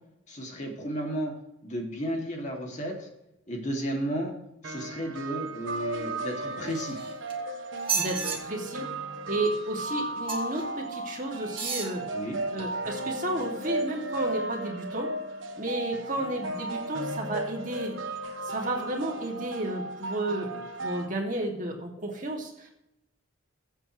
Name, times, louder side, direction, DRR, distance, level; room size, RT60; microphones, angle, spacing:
voice 1, 0.3-1.3 1.6-3.1 3.5-4.3 4.6-7.0 12.1-12.4, equal, 35° left, 0 dB, 2.6 m, -33 dB
sound 1, 4.6-21.1, right 2 dB, 80° right, 1.3 m, -35 dB
sound 2, 6.6-7.3 7.8-8.4 10.3-10.6 11.5-11.9 12.6-12.7, right 6 dB, 25° right, 1.8 m, -32 dB
voice 2, 7.9-8.9 9.3-12.0 12.5-15.1 15.6-18.0 18.4-20.5 20.8-22.7, right 1 dB, 40° right, 0 dB, 2.6 m, -32 dB
22.0 x 8.1 x 3.3 m, 0.85 s
head